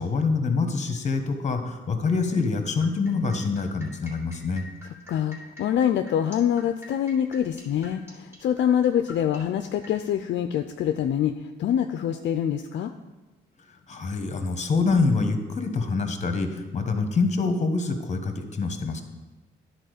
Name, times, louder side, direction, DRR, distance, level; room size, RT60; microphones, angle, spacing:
voice 1, 0.0-4.6 13.9-19.0, left 4 dB, 35° left, 6 dB, 1.2 m, -25 dB
sound 1, 2.8-9.9, left 1 dB, 10° right, 2.4 m, -46 dB
voice 2, 5.1-12.9, left 9 dB, 65° left, 7 dB, 0.5 m, -25 dB
10.0 x 4.2 x 6.5 m, 1.1 s
cardioid pair, 90°, 20 cm